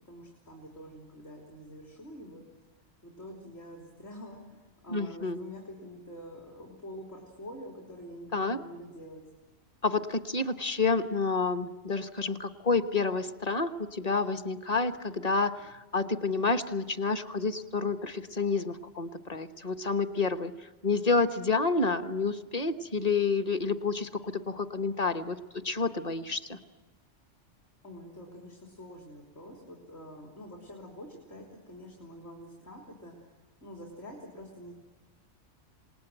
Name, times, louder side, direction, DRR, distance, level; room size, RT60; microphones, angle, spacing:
voice 1, 0.1-2.4 3.0-9.2 27.8-34.7, equal, 60° left, 0 dB, 3.8 m, -46 dB
voice 2, 4.9-5.4 8.3-8.6 9.8-20.5 20.8-25.4 25.6-26.6, left 4 dB, 35° left, 9 dB, 1.2 m, -29 dB
27.0 x 20.0 x 9.1 m, 1.2 s
omnidirectional pair, 1.3 m